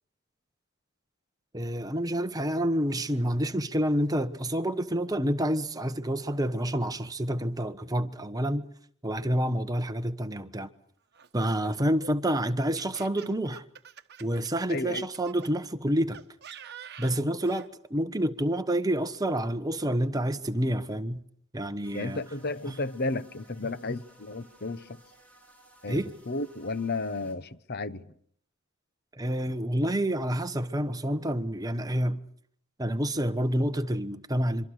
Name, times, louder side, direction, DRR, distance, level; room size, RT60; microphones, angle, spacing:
voice 1, 1.5-8.7 9.0-10.7 11.3-13.6 14.2-16.2 17.0-21.2 21.5-22.2 25.9-26.1 29.1-32.2 32.8-34.7, right 1 dB, 20° right, 1.2 m, -28 dB
Laughter, 11.1-15.5 16.1-17.7, right 7 dB, 55° right, 1.4 m, -47 dB
voice 2, 14.7-15.1 21.9-25.0 25.8-28.1, left 3 dB, 50° left, 1.1 m, -33 dB
sound 1, 21.8-27.4, right 1 dB, 5° left, 5.3 m, -58 dB
26.0 x 24.5 x 6.6 m
head